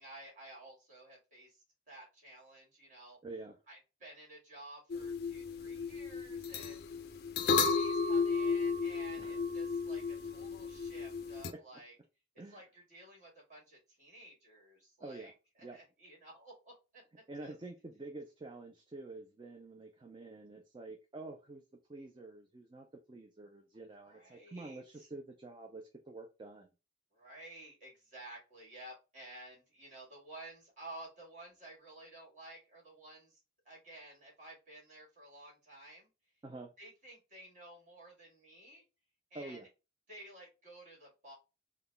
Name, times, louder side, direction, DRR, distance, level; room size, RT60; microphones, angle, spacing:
voice 1, 0.0-3.2 3.7-7.1 7.4-11.9 12.5-15.3 15.6-17.0 17.4-17.5 24.0-25.1 27.1-33.4 33.7-36.1 36.8-38.8 39.3-39.6 40.1-41.3, right 1 dB, 40° right, -2 dB, 1.9 m, -53 dB
voice 2, 3.2-3.6 9.2-9.4 12.4-12.6 15.0-15.3 15.6-15.8 17.3-21.6 21.9-26.7 36.4-36.7 39.3-39.7, right 2 dB, 25° right, 3 dB, 0.4 m, -48 dB
sound 1, 4.9-11.5, left 4 dB, 55° left, 0.4 m, -34 dB
3.9 x 2.2 x 3.3 m, 0.29 s
head